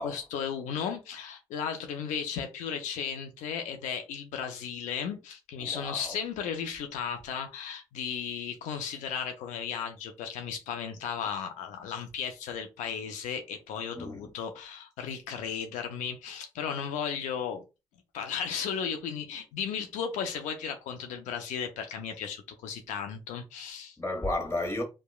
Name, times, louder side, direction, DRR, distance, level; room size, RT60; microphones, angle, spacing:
voice 1, 0.0-17.6 18.1-24.0, left 7 dB, 85° left, 0.4 m, -35 dB
voice 2, 5.6-6.1 13.9-14.3 24.0-24.8, left 1 dB, 20° left, 1.2 m, -33 dB
2.8 x 2.2 x 2.3 m
supercardioid pair, 50°, 12 cm